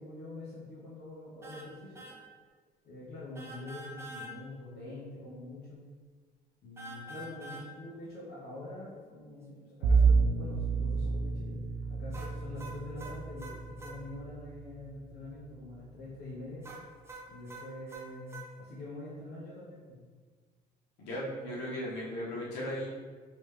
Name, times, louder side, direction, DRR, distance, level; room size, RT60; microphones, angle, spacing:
voice 1, 0.0-2.1 2.8-5.9 6.6-11.6 11.9-16.7 17.3-20.0 21.5-21.6, left 2 dB, 65° left, -7 dB, 1.0 m, -45 dB
sound 1, 1.4-1.7 2.0-2.2 3.4-4.3 6.8-7.7 12.1-14.0 16.6-18.5, right 1 dB, 15° right, 0.6 m, -45 dB
Bowed string instrument, 9.8-14.9, right 4 dB, 85° right, 0.4 m, -29 dB
voice 2, 21.0-22.9, equal, 90° left, -6 dB, 1.3 m, -36 dB
3.1 x 3.1 x 3.3 m, 1.5 s
cardioid pair, 110°, 17 cm